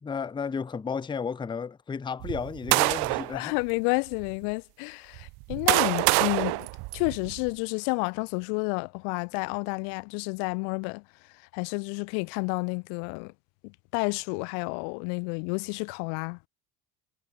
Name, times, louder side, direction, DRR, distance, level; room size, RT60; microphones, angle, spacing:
voice 1, 0.0-3.5, left 6 dB, 10° left, 0.5 m, -33 dB
sound 1, 2.2-3.4 4.1-4.3 5.2-7.5, right 31 dB, 75° right, 0.6 m, -26 dB
voice 2, 3.3-6.7 6.9-11.0 11.5-13.3 13.6-16.4, left 40 dB or more, 80° left, 0.6 m, -30 dB
supercardioid pair, 80°, 40 cm